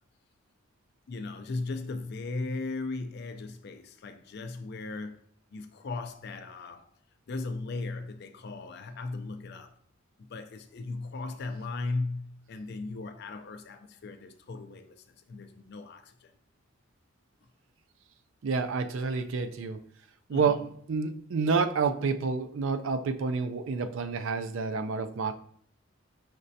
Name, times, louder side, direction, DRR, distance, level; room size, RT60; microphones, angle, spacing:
voice 1, 1.1-5.2 5.5-6.9 7.3-9.7 10.3-14.9 15.3-16.3 20.3-20.6, left 3 dB, 50° left, 0.4 m, -37 dB
voice 2, 18.4-19.8 20.3-25.3, right 5 dB, 65° right, 0.4 m, -29 dB
5.1 x 3.2 x 2.7 m
head